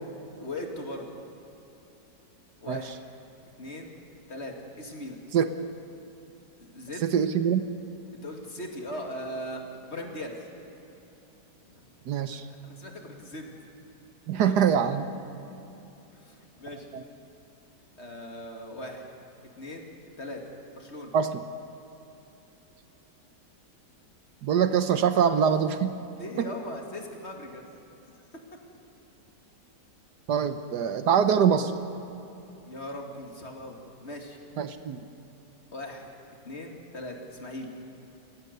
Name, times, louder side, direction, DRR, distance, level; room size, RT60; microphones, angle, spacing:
voice 1, 0.4-1.1 2.6-3.0 3.6-3.9 4.3-5.2 6.6-7.1 8.2-10.3 11.7-11.8 12.6-13.5 14.5-14.6 16.1-16.9 18.0-19.1 19.6-19.9 20.2-20.4 20.8-21.1 26.1-27.7 28.3-28.4 31.4-31.5 32.6-34.4 35.7-36.1 36.4-37.7, left 1 dB, 40° left, 2 dB, 2.5 m, -39 dB
voice 2, 7.0-7.6 12.1-12.4 14.3-15.0 16.9-17.0 21.1-21.4 24.4-26.0 26.4-26.5 30.3-31.7 34.6-35.0, right 7 dB, 70° right, 10 dB, 1.4 m, -24 dB
29.0 x 16.0 x 6.7 m, 3.0 s
omnidirectional pair, 1.9 m